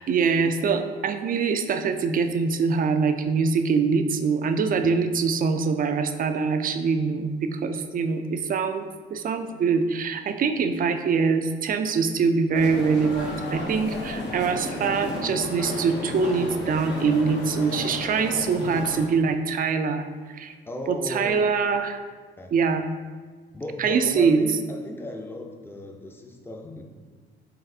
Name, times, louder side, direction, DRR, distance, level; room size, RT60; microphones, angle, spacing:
voice 1, 0.0-8.8 9.1-20.5 20.9-22.0 22.5-22.9 23.8-24.4, right 5 dB, 45° right, 8 dB, 0.4 m, -24 dB
sound 1, 12.5-19.0, left 2 dB, 60° left, 0.8 m, -33 dB
voice 2, 20.7-21.3 22.4-22.5 23.5-26.8, left 1 dB, 10° left, 3 dB, 0.5 m, -36 dB
4.1 x 4.0 x 2.7 m, 1.5 s
cardioid pair, 90°, 20 cm